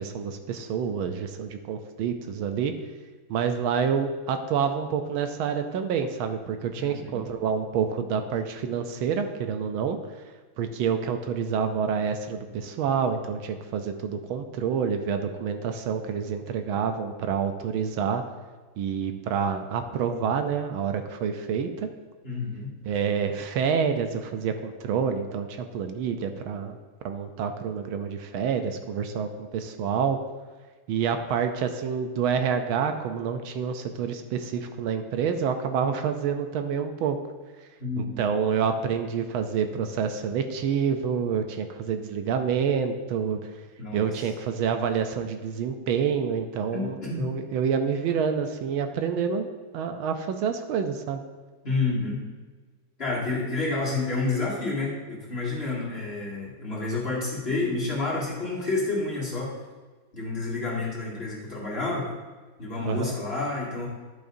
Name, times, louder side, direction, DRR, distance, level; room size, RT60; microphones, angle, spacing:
voice 1, 0.0-2.7 3.3-10.0 10.6-18.2 18.8-21.9 22.8-26.8 27.0-30.2 30.9-37.2 38.0-43.4 43.9-49.5 49.7-51.2 62.9-63.1, right 7 dB, 80° right, 7 dB, 1.4 m, -28 dB
voice 2, 6.8-7.2 22.2-22.7 37.8-38.2 43.8-44.3 46.7-47.3 51.6-52.2 53.0-59.5 60.1-62.1 62.6-63.9, left 3 dB, 30° left, -7 dB, 2.3 m, -29 dB
11.5 x 7.5 x 2.7 m, 1.3 s
omnidirectional pair, 2.3 m